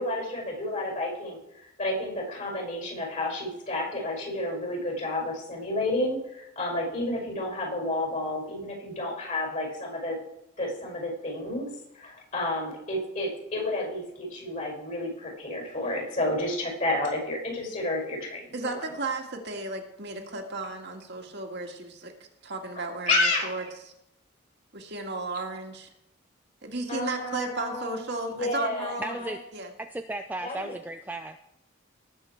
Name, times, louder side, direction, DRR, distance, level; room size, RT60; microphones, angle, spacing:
voice 1, 0.0-1.4 1.8-10.2 10.6-11.7 11.9-18.7 22.8-23.5 26.9-28.0 28.3-29.3 30.4-30.7, left 2 dB, 40° left, 0 dB, 6.1 m, -30 dB
voice 2, 18.5-22.1 22.4-23.9 24.7-25.9 26.6-29.2 29.5-29.7, right 3 dB, 55° right, 2 dB, 1.8 m, -34 dB
voice 3, 29.0-29.4 29.9-31.4, right 2 dB, 10° right, 6 dB, 0.4 m, -35 dB
19.0 x 7.8 x 4.6 m, 0.83 s
head